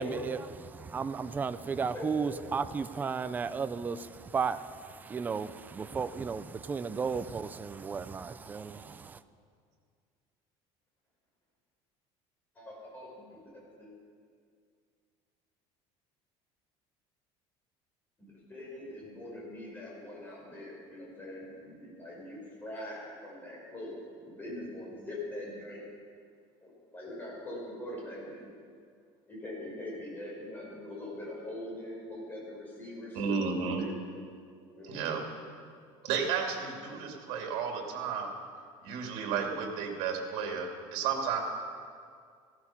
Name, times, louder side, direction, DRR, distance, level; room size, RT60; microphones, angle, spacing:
voice 1, 0.0-9.2, right 5 dB, 15° right, 12 dB, 0.4 m, -34 dB
voice 2, 1.9-2.3 12.5-13.9 18.2-25.8 26.6-28.5 29.3-33.9 34.7-35.2, left 1 dB, 15° left, -4 dB, 5.0 m, -43 dB
voice 3, 33.1-33.8 34.8-35.2 36.0-38.3 38.8-41.4, right 6 dB, 75° right, 1 dB, 2.6 m, -32 dB
17.0 x 14.0 x 5.9 m, 2.2 s
cardioid pair, 170°, 12 cm